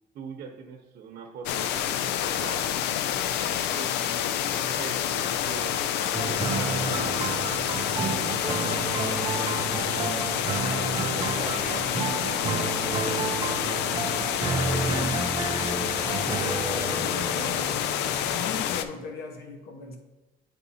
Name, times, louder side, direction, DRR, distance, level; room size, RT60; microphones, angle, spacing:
voice 1, 0.1-2.8 3.4-4.2 4.5-8.7 9.5-10.6 10.9-13.7 14.3-15.1, right 6 dB, 65° right, 3 dB, 0.8 m, -43 dB
sound 1, 1.5-18.8, left 10 dB, 85° left, 0.4 m, -28 dB
sound 2, 6.1-18.4, right 5 dB, 30° right, 0.4 m, -31 dB
voice 2, 16.6-17.7 18.2-20.0, left 4 dB, 70° left, 3 dB, 1.2 m, -38 dB
9.3 x 4.0 x 2.8 m, 1.1 s
cardioid pair, 110°, 17 cm